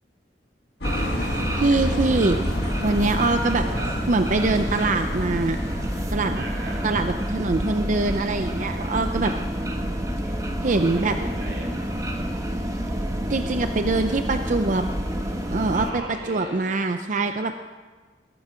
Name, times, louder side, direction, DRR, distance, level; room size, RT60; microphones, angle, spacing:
sound 1, 0.8-6.0, left 1 dB, 65° left, 1.9 m, -30 dB
sound 2, 0.8-15.9, equal, 20° right, 1.4 m, -28 dB
voice 1, 1.2-2.4 2.8-3.6 4.1-5.6 6.1-6.4 6.8-9.3 10.6-11.2 13.3-14.8 15.5-17.6, right 3 dB, 45° right, 7 dB, 0.6 m, -23 dB
voice 2, 3.5-3.9 6.3-6.9 10.6-11.8 12.1-12.4 15.7-16.7, right 1 dB, 85° right, -2 dB, 4.6 m, -37 dB
21.5 x 12.0 x 5.1 m, 1.4 s
head